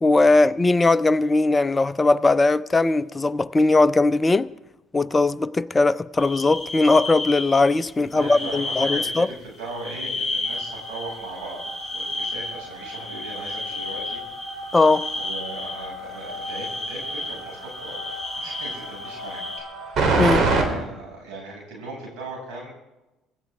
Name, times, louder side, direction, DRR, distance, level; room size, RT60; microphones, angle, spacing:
voice 1, 0.0-4.5 4.9-9.3 14.7-15.0 20.2-20.5, left 3 dB, 20° left, 0.5 m, -19 dB
sound 1, 6.2-7.9 8.1-9.3 9.5-19.6, left 2 dB, 20° right, 5.9 m, -32 dB
voice 2, 8.1-14.2 15.1-19.4 19.8-22.7, right 2 dB, 60° right, 6.5 m, -38 dB
sound 2, 10.5-20.6, right 3 dB, 45° right, 3.4 m, -29 dB
26.0 x 12.5 x 3.6 m
figure-of-eight pair, 55°, 0 cm